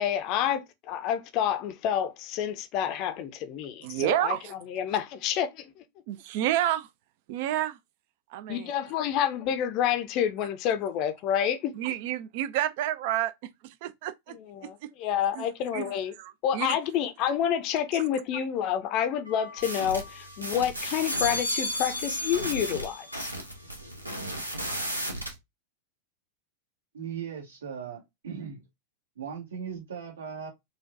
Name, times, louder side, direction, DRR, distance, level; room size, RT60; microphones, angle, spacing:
voice 1, 0.0-4.4 4.7-5.7 8.5-11.7 14.5-16.1 16.4-23.3, left 9 dB, 40° left, 0.5 m, -28 dB
voice 2, 3.8-4.5 6.1-6.9 7.3-7.8 8.3-8.7 11.7-13.3 13.6-14.4 14.6-14.9 15.3-15.4 15.7-16.8 17.9-18.0, right 13 dB, 50° right, 0.4 m, -30 dB
sound 1, 19.3-20.4 20.8-23.3 23.6-24.2, left 1 dB, 85° left, 0.7 m, -35 dB
sound 2, 19.6-25.3, right 1 dB, 85° right, 0.8 m, -36 dB
voice 3, 26.9-28.6 29.2-30.5, right 7 dB, 65° right, 1.4 m, -38 dB
4.5 x 2.2 x 2.4 m
figure-of-eight pair, 90°, 0 cm